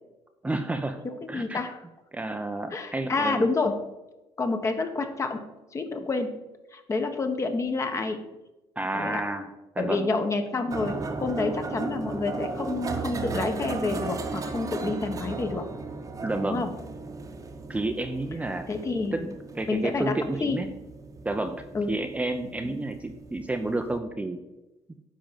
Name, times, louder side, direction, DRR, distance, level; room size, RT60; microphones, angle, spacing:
voice 1, 0.4-1.0 1.3-1.6 2.1-3.5 8.8-9.5 9.8-10.1 16.2-16.6 17.7-18.7 19.1-19.3 19.5-20.7 21.2-21.6 21.9-24.4, right 2 dB, 15° right, 6 dB, 0.7 m, -30 dB
voice 2, 1.0-1.8 2.7-3.8 4.4-5.4 5.7-6.3 6.7-8.2 8.9-9.2 9.8-15.7 16.4-16.7 18.7-19.2 19.6-20.6 21.7-21.9 22.6-22.7, left 3 dB, 30° left, 6 dB, 1.2 m, -28 dB
sound 1, 10.7-24.0, right 3 dB, 35° right, 1.1 m, -36 dB
10.0 x 3.8 x 7.4 m, 1.0 s
cardioid pair, 120°, 11 cm